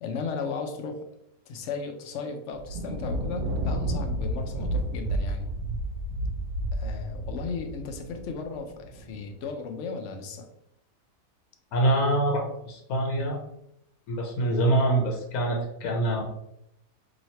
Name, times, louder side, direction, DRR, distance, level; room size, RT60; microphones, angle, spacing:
voice 1, 0.0-1.1 1.5-5.5 6.7-10.5, left 4 dB, 65° left, 5 dB, 0.8 m, -35 dB
Thunder, 2.5-9.2, right 1 dB, 65° right, 0.8 m, -31 dB
voice 2, 11.7-13.4 14.1-16.2, right 1 dB, 85° left, 0 dB, 1.2 m, -25 dB
2.9 x 2.8 x 4.1 m, 0.79 s
omnidirectional pair, 1.5 m